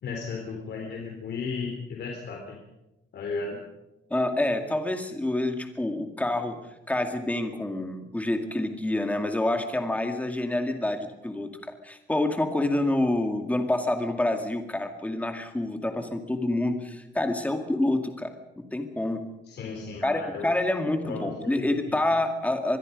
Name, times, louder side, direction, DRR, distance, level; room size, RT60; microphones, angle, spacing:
voice 1, 0.0-2.6 3.1-3.6 19.5-20.5 21.0-22.0, left 4 dB, 65° left, 1 dB, 3.8 m, -35 dB
voice 2, 4.1-6.6 6.9-11.5 11.8-18.3 18.6-19.2 20.0-22.8, left 1 dB, 10° left, 5 dB, 2.3 m, -27 dB
25.0 x 21.0 x 5.3 m, 0.94 s
cardioid pair, 160°, 19 cm